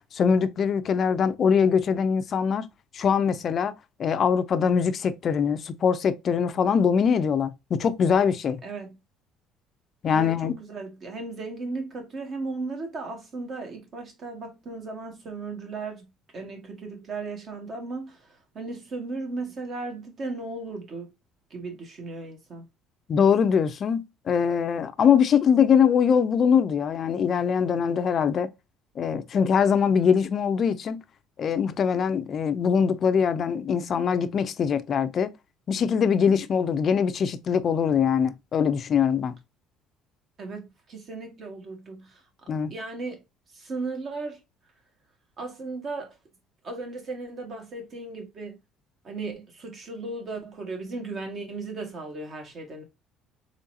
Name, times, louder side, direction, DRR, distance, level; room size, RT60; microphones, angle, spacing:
voice 1, 0.0-2.7 2.9-3.7 4.0-8.6 10.0-10.5 23.1-28.5 29.0-31.0 31.4-35.3 35.7-39.4 42.5-42.7, left 7 dB, 45° left, 0.5 m, -22 dB
voice 2, 8.6-9.0 10.1-21.1 21.5-22.6 40.4-42.2 42.7-43.2 43.5-44.4 45.4-46.1 46.6-48.6 49.0-52.8, right 3 dB, 45° right, 1.5 m, -36 dB
3.9 x 3.2 x 2.6 m
cardioid pair, 115°, 0 cm